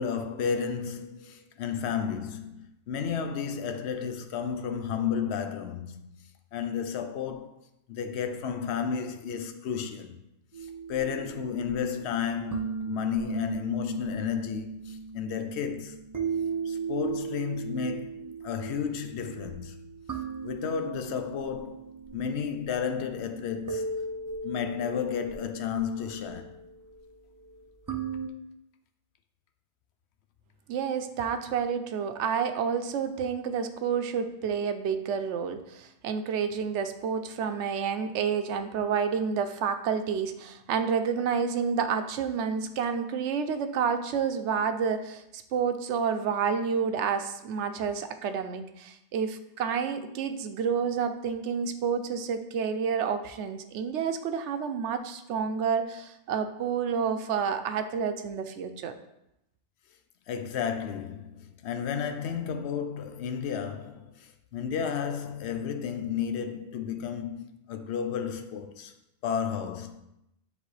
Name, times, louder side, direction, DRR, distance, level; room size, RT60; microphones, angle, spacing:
voice 1, 0.0-6.1 6.5-7.6 7.9-10.2 10.6-16.0 16.6-19.8 20.4-21.8 22.1-23.9 24.4-26.6 60.3-68.9 69.2-70.0, left 7 dB, 75° left, 0.9 m, -32 dB
sound 1, 10.5-28.3, right 5 dB, 25° right, 0.5 m, -37 dB
voice 2, 30.7-58.9, right 6 dB, 90° right, 0.9 m, -29 dB
9.6 x 3.3 x 3.2 m
omnidirectional pair, 1.2 m